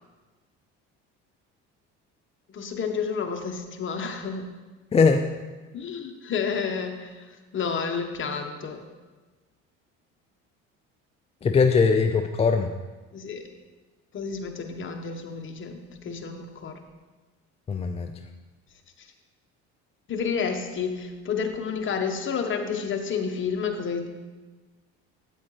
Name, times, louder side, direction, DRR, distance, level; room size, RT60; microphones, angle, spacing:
voice 1, 2.5-4.4 5.7-8.8 13.1-13.4 14.1-16.7 20.1-24.1, left 6 dB, 40° left, 4 dB, 1.2 m, -30 dB
voice 2, 4.9-5.3 11.4-12.7 17.7-18.1, left 5 dB, 20° left, 5 dB, 0.4 m, -20 dB
8.6 x 8.4 x 3.2 m, 1.3 s
supercardioid pair, 90°, 31 cm